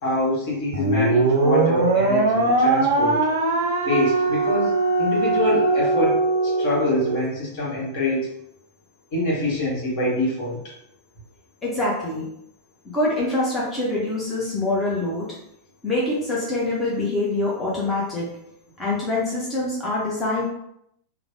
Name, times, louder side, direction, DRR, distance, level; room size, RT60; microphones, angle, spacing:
voice 1, 0.0-3.3 3.8-8.3 9.1-10.7, left 1 dB, 50° left, -5 dB, 1.1 m, -25 dB
sound 1, 0.7-7.2, right 3 dB, 60° right, 0.4 m, -21 dB
voice 2, 11.6-12.3 12.9-15.2 15.8-18.3 18.8-20.5, left 2 dB, 15° left, -6 dB, 0.7 m, -24 dB
3.1 x 2.0 x 2.5 m, 0.76 s
figure-of-eight pair, 90°, 0 cm